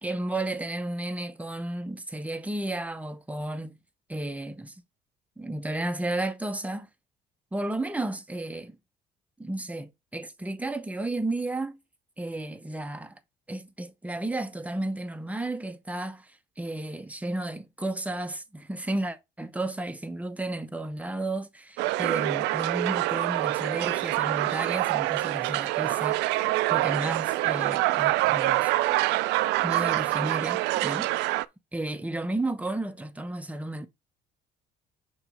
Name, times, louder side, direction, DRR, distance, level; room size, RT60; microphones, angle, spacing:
voice 1, 0.0-3.8 4.1-4.8 5.4-6.9 7.5-8.8 9.4-11.8 12.2-13.2 13.5-26.4 26.7-28.7 29.6-31.1 31.7-33.9, right 2 dB, 10° right, 0.9 m, -33 dB
sound 1, 21.8-31.4, right 17 dB, 70° right, 0.4 m, -26 dB
6.0 x 3.2 x 5.0 m
hypercardioid pair, 60°, 18 cm